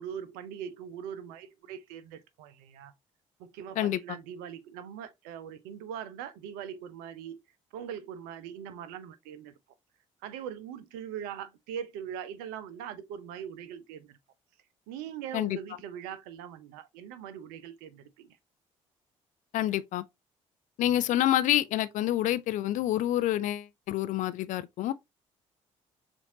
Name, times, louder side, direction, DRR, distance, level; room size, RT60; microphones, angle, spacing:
voice 1, 0.0-2.9 3.4-7.4 7.7-9.5 10.2-14.2 14.9-18.4, right 9 dB, 65° right, 0.6 m, -41 dB
voice 2, 19.5-20.0 20.8-24.9, left 13 dB, 50° left, 0.4 m, -27 dB
6.9 x 2.6 x 2.8 m
figure-of-eight pair, 45°, 17 cm